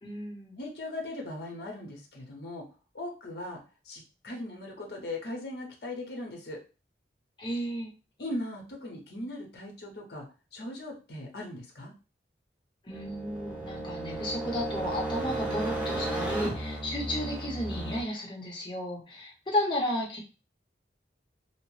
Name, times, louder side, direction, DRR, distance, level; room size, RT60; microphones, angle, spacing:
voice 1, 0.0-0.6 7.4-7.9 12.8-20.2, left 1 dB, 25° left, -1 dB, 0.7 m, -33 dB
voice 2, 0.6-2.7 2.9-6.6 8.2-10.3 10.5-11.9, left 1 dB, 65° left, 0 dB, 0.8 m, -39 dB
sound 1, 12.9-18.0, right 2 dB, 10° right, 0.6 m, -34 dB
2.8 x 2.1 x 3.1 m, 0.33 s
head